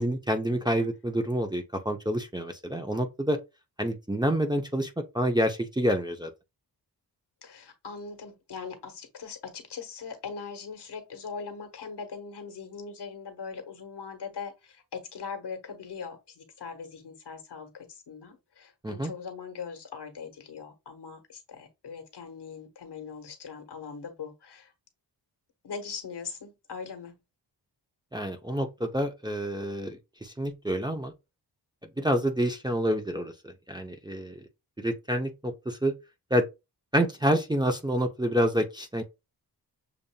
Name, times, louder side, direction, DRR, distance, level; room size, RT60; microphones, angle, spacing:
voice 1, 0.0-3.4 3.8-6.3 18.8-19.1 28.1-31.1 32.0-33.3 33.7-34.4 34.8-35.9 36.3-36.4 36.9-39.0, equal, 10° right, 0.6 m, -28 dB
voice 2, 7.4-24.7 25.6-27.2, left 5 dB, 70° left, 1.2 m, -41 dB
6.9 x 2.6 x 2.2 m
wide cardioid pair, 85°, 42 cm